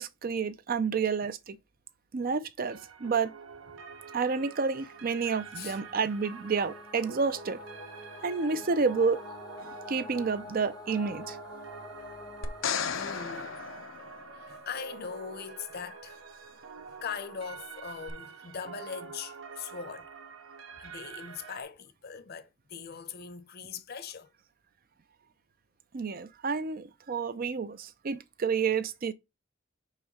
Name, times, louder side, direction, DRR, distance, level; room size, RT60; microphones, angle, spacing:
voice 1, 0.0-1.6 2.1-3.3 4.1-7.6 8.2-9.2 9.6-11.4 25.9-29.1, right 5 dB, 45° right, 0.5 m, -30 dB
sound 1, 2.7-21.6, right 5 dB, 80° right, 0.9 m, -47 dB
sound 2, 4.2-12.7, left 4 dB, 20° left, 0.4 m, -48 dB
sound 3, 12.4-14.7 18.1-18.2, left 7 dB, 90° left, 0.7 m, -35 dB
voice 2, 12.9-13.6 14.4-16.2 17.0-20.1 20.8-24.3, left 6 dB, 55° left, 0.8 m, -41 dB
4.9 x 3.6 x 5.6 m
head